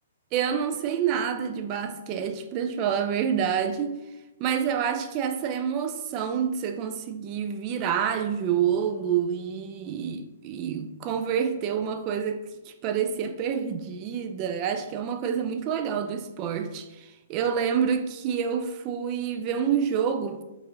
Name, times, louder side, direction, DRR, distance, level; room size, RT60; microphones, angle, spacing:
voice 1, 0.3-3.9 4.4-20.4, right 8 dB, 35° right, 0.3 m, -28 dB
4.6 x 2.5 x 2.6 m
hypercardioid pair, 125°, 0 cm